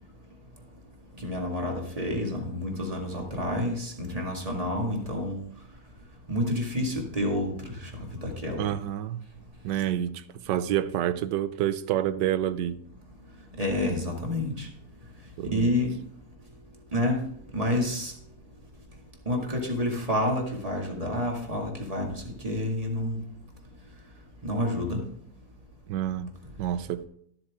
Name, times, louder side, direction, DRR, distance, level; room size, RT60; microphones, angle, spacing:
voice 1, 1.2-5.4 6.3-7.5 7.8-8.6 13.6-14.7 15.5-15.9 16.9-17.2 17.5-18.1 19.3-23.2 24.4-25.0, left 1 dB, 20° right, 2.0 m, -29 dB
voice 2, 8.6-9.2 9.6-12.8 15.4-15.7 25.9-27.0, right 11 dB, 85° right, 1.3 m, -28 dB
13.0 x 7.6 x 3.6 m
omnidirectional pair, 1.8 m